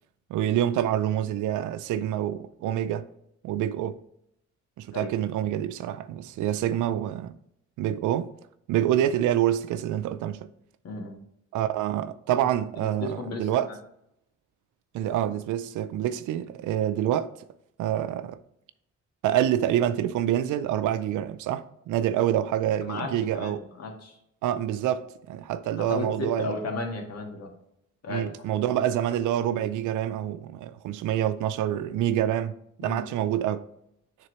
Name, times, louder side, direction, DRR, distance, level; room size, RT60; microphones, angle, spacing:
voice 1, 0.3-3.1 3.4-4.0 4.8-7.4 7.8-8.3 8.7-10.5 11.5-13.7 14.9-17.3 17.8-18.4 19.2-23.6 24.4-26.5 28.1-33.7, right 11 dB, 80° right, 0.5 m, -27 dB
voice 2, 10.8-11.2 12.4-12.5 12.8-13.8 22.8-24.2 25.8-27.5 28.0-28.3 32.8-33.0, left 2 dB, 55° left, 1.7 m, -34 dB
9.5 x 3.8 x 3.0 m
cardioid pair, 90°, 30 cm